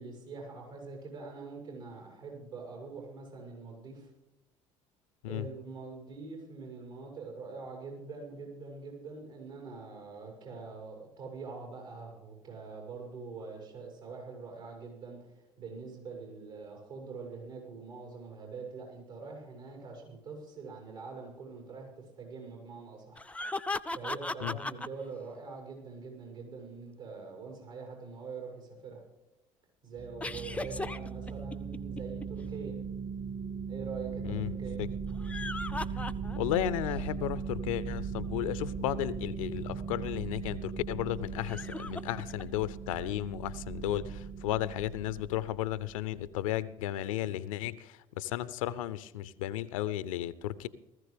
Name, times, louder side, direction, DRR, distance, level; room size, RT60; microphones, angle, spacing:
voice 1, 0.0-4.1 5.3-15.2 15.6-23.2 23.9-29.0 29.8-32.8 33.6-34.8, right 4 dB, 75° right, 6.2 m, -44 dB
sound 1, 23.2-24.9 30.2-32.2 35.1-36.6 37.0-37.1 39.5-39.6 41.4-42.4, left 2 dB, 5° left, 0.4 m, -37 dB
sound 2, 30.0-46.2, right 6 dB, 45° right, 1.3 m, -39 dB
voice 2, 36.4-50.7, left 13 dB, 70° left, 0.5 m, -34 dB
19.0 x 14.5 x 3.4 m
figure-of-eight pair, 55°, 18 cm